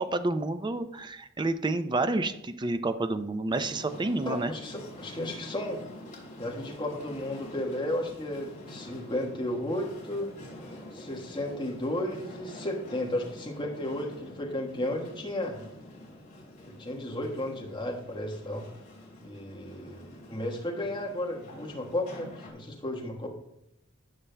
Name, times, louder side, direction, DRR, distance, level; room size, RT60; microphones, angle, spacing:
voice 1, 0.0-4.5, right 2 dB, 20° right, 10 dB, 0.5 m, -29 dB
sound 1, 3.5-22.5, left 1 dB, 40° left, 2.8 m, -47 dB
voice 2, 4.2-5.8 6.4-10.3 10.9-15.6 16.6-18.6 19.2-23.3, left 1 dB, 25° left, 0 dB, 1.3 m, -33 dB
17.0 x 6.6 x 2.2 m, 0.82 s
head